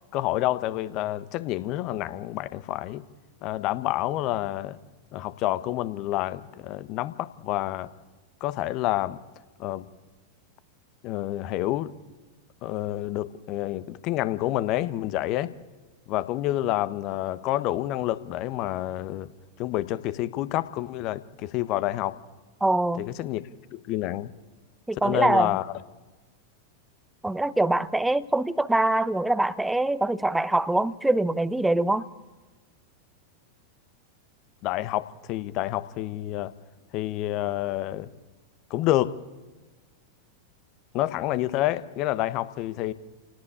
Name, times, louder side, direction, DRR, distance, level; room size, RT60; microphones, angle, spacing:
voice 1, 0.1-3.0 3.4-4.8 5.1-7.9 8.4-9.2 9.6-9.9 11.0-11.9 12.6-15.5 16.1-19.3 19.6-22.2 23.0-24.3 25.0-25.7 34.6-36.5 36.9-38.1 38.7-39.2 40.9-42.9, left 15 dB, 40° left, 16 dB, 1.1 m, -28 dB
voice 2, 22.6-23.1 24.9-25.6 27.2-32.1, right 2 dB, 5° right, 16 dB, 1.0 m, -24 dB
29.0 x 18.0 x 8.6 m, 1.2 s
figure-of-eight pair, 90°, 0 cm